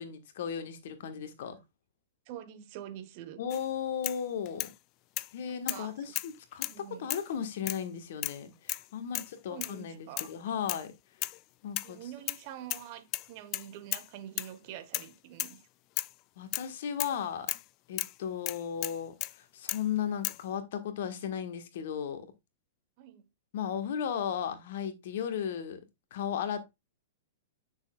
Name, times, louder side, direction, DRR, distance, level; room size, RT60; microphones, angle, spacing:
voice 1, 0.0-1.6 3.4-4.7 5.3-10.9 11.6-12.0 16.4-17.5 17.9-19.1 19.5-22.3 23.5-25.8 26.1-26.7, left 8 dB, 55° left, 1.6 m, -35 dB
voice 2, 2.3-3.4 5.5-5.9 6.7-7.1 9.5-10.3 11.8-15.6 23.0-23.2, right 11 dB, 40° right, 1.2 m, -46 dB
sound 1, 3.5-3.6 4.0-4.7 5.2-5.3 5.7-5.9 6.1-6.8 7.1-7.3 7.7-7.8 8.2-8.4 8.7-8.9 9.1-9.3 9.6-9.8 10.2-10.3 10.7-10.9 11.2-11.4 11.8-12.4 12.7-12.9 13.1-14.1 14.4-14.5 14.9-15.1 15.4-15.6 16.0-16.1 16.5-16.7 17.0-17.2 17.5-17.6 18.0-18.2 18.5-19.4 19.7-19.9 20.2-20.4, left 19 dB, 35° left, 0.3 m, -35 dB
9.5 x 6.4 x 2.4 m
figure-of-eight pair, 105°, 0 cm